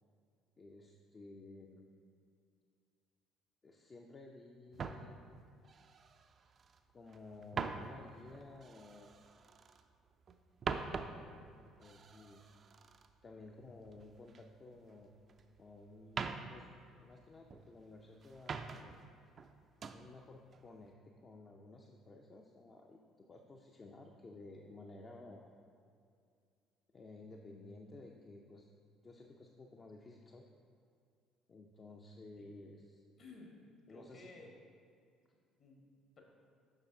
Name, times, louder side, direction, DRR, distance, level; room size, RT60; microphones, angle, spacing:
voice 1, 0.6-1.8 3.6-5.2 6.9-9.1 11.1-12.5 13.2-15.1 15.6-19.0 19.9-25.5 26.9-28.7 29.0-30.5 31.5-33.0 33.9-34.3, left 2 dB, 35° left, 2 dB, 0.4 m, -54 dB
sound 1, 4.7-6.8 7.1-9.9 10.2-14.4 14.7-15.6 16.0-17.8 18.2-19.1 19.4-20.1 20.5-20.8, right 5 dB, 40° right, 0.3 m, -45 dB
voice 2, 33.2-34.5 35.6-35.8 36.2-36.3, left 3 dB, 50° left, 0 dB, 1.2 m, -55 dB
7.3 x 5.6 x 2.7 m, 2.3 s
figure-of-eight pair, 55°, 0 cm